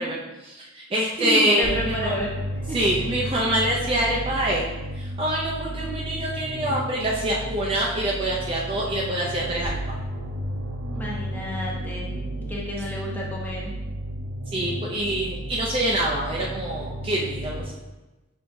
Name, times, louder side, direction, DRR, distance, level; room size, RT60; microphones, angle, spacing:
voice 1, 0.0-2.1 2.7-4.7 5.0-9.8 14.5-17.7, right 1 dB, 25° right, -3 dB, 0.4 m, -25 dB
voice 2, 1.2-2.3 2.7-2.8 10.9-12.1 12.4-13.7, left 1 dB, 10° left, -5 dB, 0.8 m, -30 dB
sound 1, 1.6-17.6, right 1 dB, 75° right, 0.7 m, -33 dB
6.1 x 3.4 x 2.6 m, 1.1 s
head